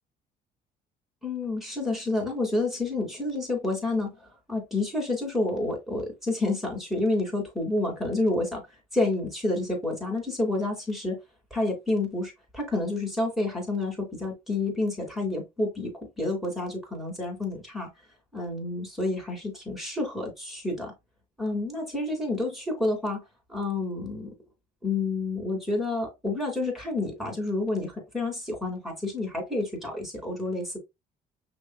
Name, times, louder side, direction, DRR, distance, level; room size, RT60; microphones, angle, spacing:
voice 1, 1.2-8.6 8.9-11.2 11.5-17.9 18.3-20.9 21.4-23.2 23.5-24.3 24.8-30.8, left 2 dB, ahead, 2.8 m, -29 dB
5.9 x 3.1 x 2.3 m
cardioid pair, 110°, 17 cm